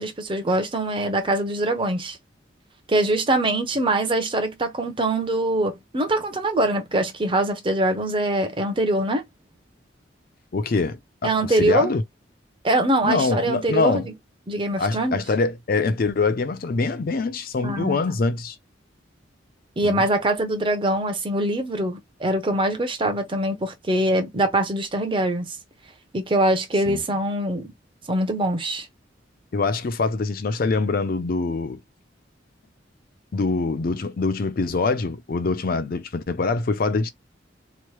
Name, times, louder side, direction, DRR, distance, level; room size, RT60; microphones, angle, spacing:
voice 1, 0.0-2.2 2.9-9.2 11.2-11.9 12.6-14.1 14.5-15.2 17.6-18.0 19.8-25.6 26.1-27.7 28.1-28.9, right 1 dB, 25° right, 0.7 m, -23 dB
voice 2, 10.5-12.0 13.0-14.1 14.8-18.6 19.8-20.1 26.9-27.0 29.5-31.8 33.3-37.1, left 3 dB, 50° left, 0.4 m, -24 dB
3.0 x 2.1 x 3.1 m
head